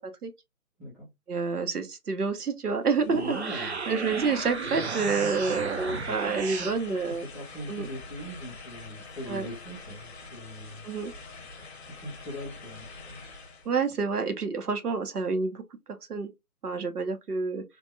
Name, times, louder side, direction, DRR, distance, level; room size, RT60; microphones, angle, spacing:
voice 1, 1.3-7.3 7.7-7.9 9.3-9.5 10.8-11.1 13.7-15.6 16.1-16.3 16.6-17.6, right 4 dB, 85° right, 0.8 m, -28 dB
sound 1, 2.8-13.7, left 3 dB, 45° left, 0.7 m, -45 dB
sound 2, 3.0-6.8, right 4 dB, 50° right, 0.4 m, -34 dB
voice 2, 3.1-3.8 6.0-10.9 11.9-13.3, equal, 10° left, 0.6 m, -41 dB
3.4 x 2.2 x 2.6 m
figure-of-eight pair, 150°, 45 cm